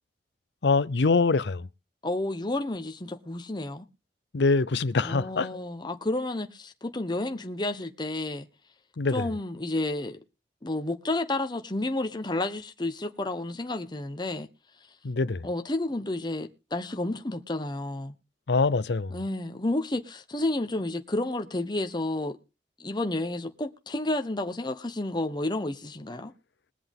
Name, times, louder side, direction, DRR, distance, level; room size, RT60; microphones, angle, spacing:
voice 1, 0.6-1.7 4.3-5.5 9.0-9.3 15.0-15.5 18.5-19.2, left 3 dB, 75° left, 0.6 m, -24 dB
voice 2, 2.0-3.8 5.0-8.5 9.1-10.2 10.6-14.5 15.4-18.1 19.1-22.4 22.8-26.3, left 2 dB, 25° left, 1.1 m, -31 dB
21.5 x 8.0 x 3.6 m
head